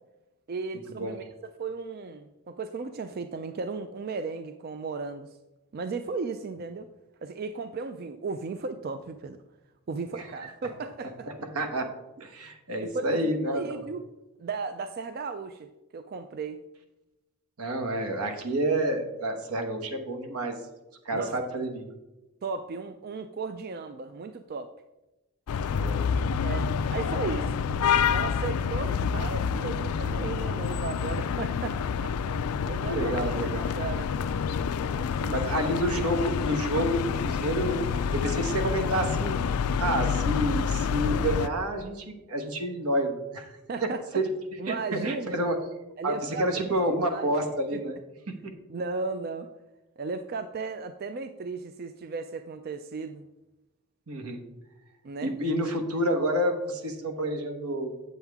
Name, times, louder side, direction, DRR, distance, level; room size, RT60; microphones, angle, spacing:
voice 1, 0.5-5.4 5.7-6.9 7.2-9.4 9.9-11.3 12.8-14.0 14.4-16.6 21.1-21.3 22.4-24.7 26.4-27.6 28.1-34.1 35.0-35.4 43.7-44.0 44.6-45.3 46.0-47.3 47.7-47.8 48.7-49.5 50.0-53.3 55.0-55.3, right 4 dB, 45° right, 9 dB, 0.3 m, -35 dB
voice 2, 10.2-10.5 11.5-11.9 12.2-13.8 17.6-20.6 21.0-21.9 25.7-26.1 32.9-33.7 35.3-37.8 38.1-39.4 39.8-43.5 44.1-44.3 44.7-45.6 46.0-48.0 48.4-48.5 54.1-54.4 55.2-58.0, right 1 dB, 80° right, 5 dB, 1.2 m, -29 dB
sound 1, 25.5-41.5, left 6 dB, 80° left, 0.4 m, -28 dB
7.9 x 7.3 x 3.5 m, 1.0 s
head